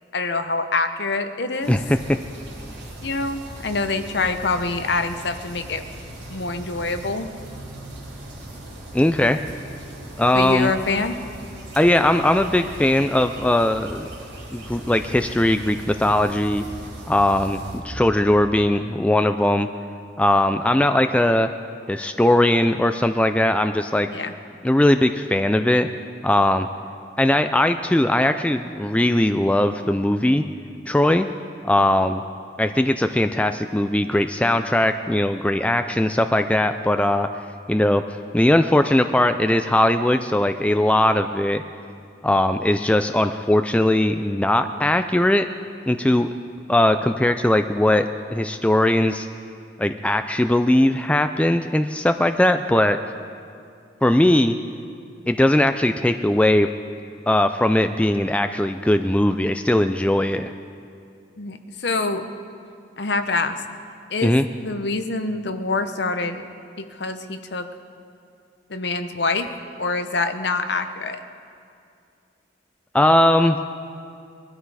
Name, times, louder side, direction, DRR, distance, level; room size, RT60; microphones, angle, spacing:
voice 1, 0.1-1.8 3.0-5.8 6.3-7.3 9.2-9.3 10.3-11.2 24.1-24.3 61.4-62.3 63.0-63.6 64.1-66.4 66.8-67.7 68.7-69.5 69.8-71.2, left 3 dB, 60° left, 8 dB, 0.9 m, -25 dB
sound 1, 1.6-17.8, right 1 dB, 65° right, 3.3 m, -39 dB
voice 2, 1.7-2.0 8.9-9.4 10.2-10.7 11.7-14.1 14.5-16.6 17.1-19.7 20.2-21.5 21.9-24.1 24.6-25.9 26.2-26.7 27.2-30.4 30.9-31.3 31.6-32.2 32.6-37.3 37.7-38.0 38.3-41.6 42.2-45.5 45.9-46.3 46.7-49.3 49.8-53.0 54.0-54.5 55.3-56.7 57.3-60.5 64.2-64.5 72.9-73.7, left 1 dB, 5° left, 8 dB, 0.3 m, -19 dB
21.5 x 12.5 x 4.8 m, 2.4 s
head